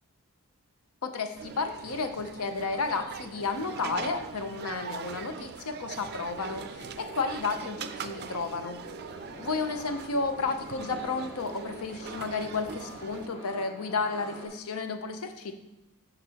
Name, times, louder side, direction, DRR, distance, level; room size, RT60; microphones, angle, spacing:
voice 1, 1.0-8.8 9.4-15.5, left 4 dB, 75° left, 7 dB, 0.7 m, -32 dB
sound 1, 1.3-13.3, right 6 dB, 50° right, 0.4 m, -42 dB
sound 2, 6.4-14.5, equal, 25° left, 1.7 m, -46 dB
12.0 x 4.0 x 2.9 m, 0.98 s
head